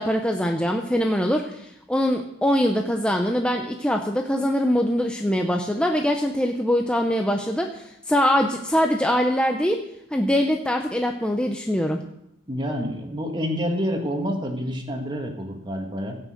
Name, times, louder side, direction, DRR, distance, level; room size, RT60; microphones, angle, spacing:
voice 1, 0.0-9.8 10.1-12.0, equal, 5° left, 3 dB, 0.7 m, -23 dB
voice 2, 12.5-16.2, equal, 20° right, 3 dB, 1.9 m, -28 dB
16.0 x 6.4 x 7.8 m, 0.81 s
head